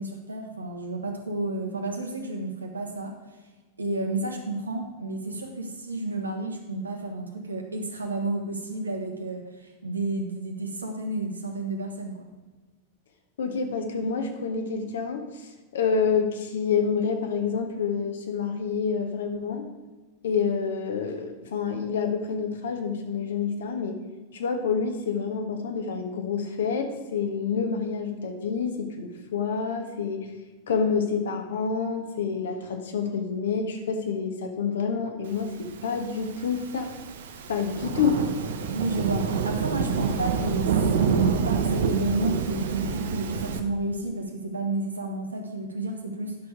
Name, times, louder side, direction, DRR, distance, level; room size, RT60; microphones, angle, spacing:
voice 1, 0.0-3.2 3.8-12.3 38.7-46.4, right 2 dB, 80° right, 3 dB, 1.4 m, -31 dB
voice 2, 13.4-19.7 20.2-24.0 24.3-30.3 30.7-36.9 37.5-38.2, left 6 dB, 60° left, 5 dB, 1.4 m, -28 dB
Thunderstorm / Rain, 35.9-43.6, right 6 dB, 60° right, 0.8 m, -27 dB
10.0 x 6.4 x 4.8 m, 1.2 s
figure-of-eight pair, 90°, 0 cm